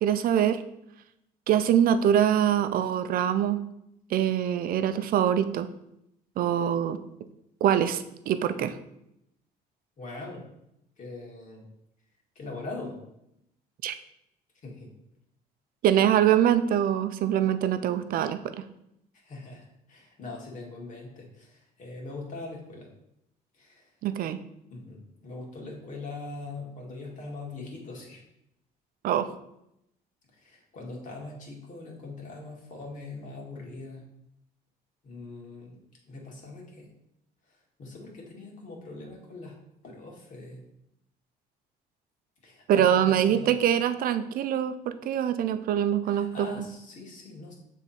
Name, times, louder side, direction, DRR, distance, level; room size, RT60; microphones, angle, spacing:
voice 1, 0.0-0.6 1.5-3.6 4.1-5.7 6.4-7.0 7.6-8.8 13.8-13.9 15.8-18.6 24.0-24.4 29.0-29.3 42.7-46.5, right 10 dB, 60° right, 11 dB, 0.5 m, -24 dB
voice 2, 10.0-10.4 11.0-11.7 12.4-13.0 14.6-14.9 19.1-22.9 23.5-23.9 24.7-28.2 30.3-34.0 35.0-35.8 36.0-36.9 37.5-39.6 39.8-40.6 42.4-43.6 46.0-47.5, left 3 dB, 50° left, -2 dB, 1.9 m, -42 dB
6.8 x 3.6 x 4.2 m, 0.81 s
cardioid pair, 110°, 17 cm